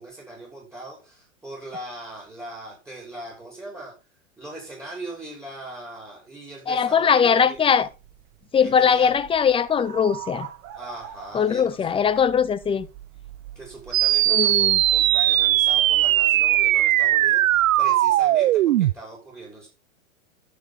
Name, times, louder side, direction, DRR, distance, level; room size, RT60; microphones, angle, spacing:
voice 1, 0.0-3.9 4.4-7.6 8.6-9.1 10.7-12.0 13.6-19.7, right 1 dB, 5° right, 5.5 m, -40 dB
voice 2, 6.7-7.9 8.5-10.5 11.3-12.9 14.3-14.8, left 7 dB, 15° left, 0.7 m, -20 dB
sound 1, 7.5-17.8, right 13 dB, 40° right, 2.1 m, -43 dB
sound 2, 13.9-18.9, right 14 dB, 75° right, 0.6 m, -19 dB
11.5 x 7.3 x 4.1 m
hypercardioid pair, 110°, 40 cm